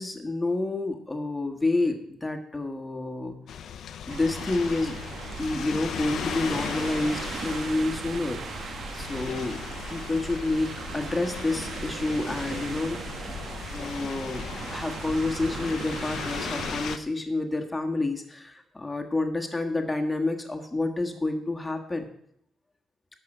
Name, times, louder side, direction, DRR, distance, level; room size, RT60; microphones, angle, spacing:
voice 1, 0.0-3.4 4.1-5.0 5.4-9.6 9.9-13.0 13.7-14.5 14.7-22.1, left 2 dB, 15° left, 4 dB, 1.6 m, -29 dB
sound 1, 3.5-17.0, left 8 dB, 65° left, 0.8 m, -38 dB
sound 2, 4.1-17.0, right 5 dB, 50° right, 1.2 m, -37 dB
11.5 x 5.7 x 7.8 m, 0.71 s
cardioid pair, 110°, 0 cm